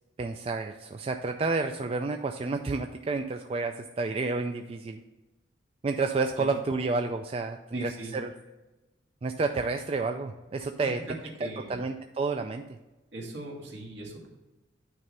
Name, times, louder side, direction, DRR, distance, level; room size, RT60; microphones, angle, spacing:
voice 1, 0.2-5.0 5.8-8.3 9.2-11.0 11.7-12.6, right 3 dB, 30° right, 5 dB, 0.3 m, -30 dB
voice 2, 7.7-8.2 10.8-11.1 11.4-11.8 13.1-14.3, right 1 dB, 70° right, -1 dB, 1.8 m, -39 dB
9.4 x 3.2 x 5.3 m, 1.1 s
head